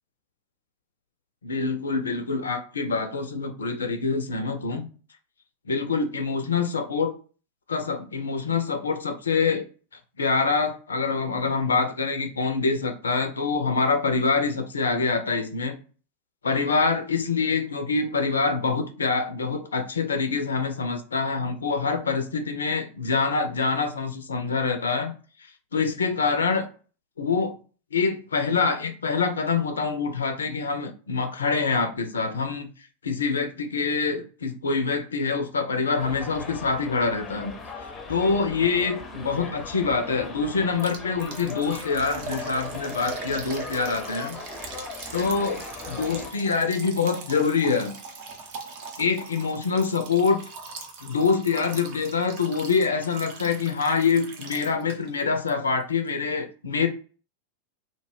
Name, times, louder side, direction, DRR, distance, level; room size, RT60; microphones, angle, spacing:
voice 1, 1.4-4.9 5.7-7.1 7.7-9.7 10.2-15.8 16.4-25.1 25.7-26.7 27.2-27.6 27.9-32.7 33.0-37.5 37.8-44.4 45.1-47.9 49.0-50.4 51.0-56.9, left 4 dB, 70° left, 0.4 m, -25 dB
Subway metro underground, 36.0-46.3, left 4 dB, 20° left, 0.5 m, -39 dB
Liquid, 40.8-55.2 55.5-55.6 56.1-56.2, right 3 dB, 45° right, 0.5 m, -40 dB
2.1 x 2.0 x 3.2 m
figure-of-eight pair, 90°, 0 cm